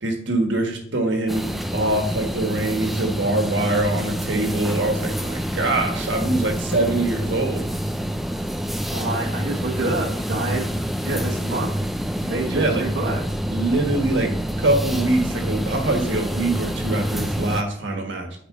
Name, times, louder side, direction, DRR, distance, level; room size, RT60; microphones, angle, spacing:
voice 1, 0.0-7.7 12.3-12.8 13.5-18.3, right 2 dB, 85° right, 2 dB, 1.6 m, -23 dB
sound 1, 1.3-17.6, equal, ahead, 0.3 m, -27 dB
voice 2, 8.9-10.7 11.0-11.7 12.2-13.2, right 2 dB, 70° right, -4 dB, 1.2 m, -27 dB
9.4 x 4.8 x 3.8 m, 0.64 s
head